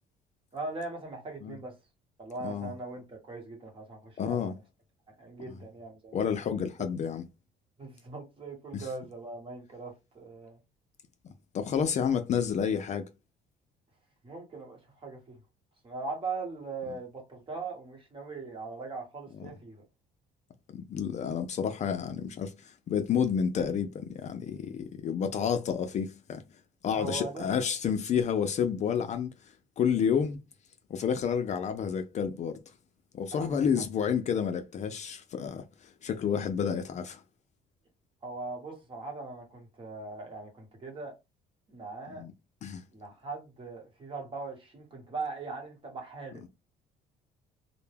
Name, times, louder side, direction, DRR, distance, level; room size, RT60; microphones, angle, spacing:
voice 1, 0.5-1.7 2.2-4.6 5.1-6.2 6.8-6.9 7.8-10.6 14.2-15.4 15.8-19.8 26.9-27.5 33.3-33.8 38.2-41.1 41.7-42.2 42.9-46.5, right 3 dB, 30° right, 1.1 m, -40 dB
voice 2, 4.2-4.5 6.1-7.3 8.7-8.9 11.5-13.0 20.7-26.4 26.8-29.3 29.8-30.4 30.9-32.6 33.1-35.6 36.0-37.2 42.2-42.3 42.6-42.8, left 7 dB, 45° left, 0.4 m, -30 dB
2.1 x 2.1 x 3.2 m
cardioid pair, 110°, 17 cm